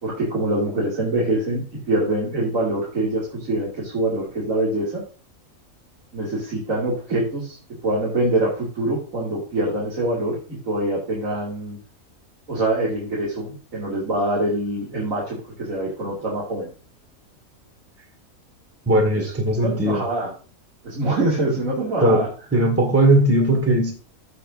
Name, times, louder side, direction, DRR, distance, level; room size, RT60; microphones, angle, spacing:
voice 1, 0.0-5.0 6.1-7.6 7.8-11.8 12.5-16.7 19.1-19.3 19.6-20.3 20.8-22.3, right 1 dB, 70° right, -6 dB, 3.1 m, -24 dB
voice 2, 18.8-20.0 22.0-22.2 22.5-23.9, right 1 dB, 10° right, 2 dB, 1.7 m, -18 dB
16.0 x 5.4 x 2.6 m, 0.37 s
omnidirectional pair, 1.5 m